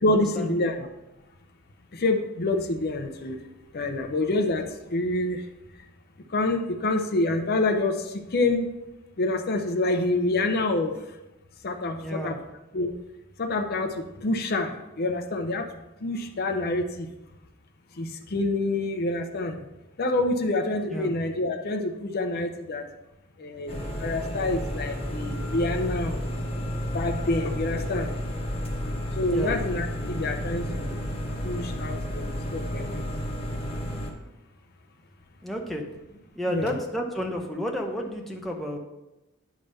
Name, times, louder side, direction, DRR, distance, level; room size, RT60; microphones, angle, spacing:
voice 1, 0.0-0.9 1.9-3.4 3.7-5.4 6.3-8.7 9.2-10.9 11.6-12.4 12.7-12.9 13.4-15.7 16.0-17.1 18.0-19.6 20.0-22.8 23.4-26.2 26.9-28.2 29.2-31.0 31.4-33.0 36.5-36.8, left 2 dB, 45° left, 5 dB, 0.6 m, -27 dB
voice 2, 12.0-12.4 20.9-21.1 29.2-29.5 35.4-35.8 36.4-38.8, equal, ahead, 0 dB, 0.7 m, -31 dB
sound 1, 23.7-34.1, equal, 25° left, 1.1 m, -31 dB
10.0 x 3.4 x 5.4 m, 0.98 s
head